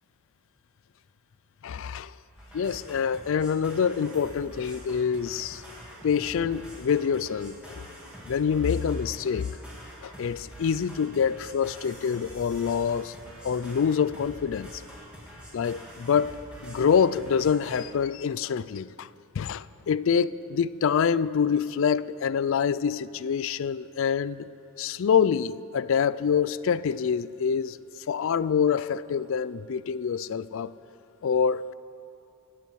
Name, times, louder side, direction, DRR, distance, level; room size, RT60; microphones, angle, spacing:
voice 1, 1.6-2.1 2.5-5.6 6.0-7.9 8.3-9.5 10.0-13.1 13.4-14.7 15.5-19.1 19.4-24.5 24.8-27.8 28.1-30.7 31.2-31.7, left 7 dB, 60° left, 0.3 m, -26 dB
sound 1, 2.4-17.8, equal, 5° right, 2.6 m, -46 dB
24.5 x 8.5 x 4.7 m
head